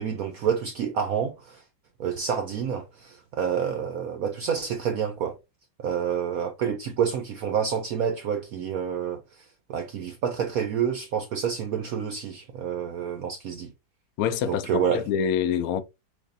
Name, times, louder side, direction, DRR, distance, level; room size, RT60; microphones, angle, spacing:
voice 1, 0.0-1.6 2.0-5.4 5.8-9.4 9.7-13.7 14.5-15.0, right 7 dB, 65° right, 0.9 m, -28 dB
voice 2, 14.2-15.8, left 8 dB, 70° left, 0.9 m, -26 dB
6.2 x 2.6 x 2.6 m
omnidirectional pair, 2.0 m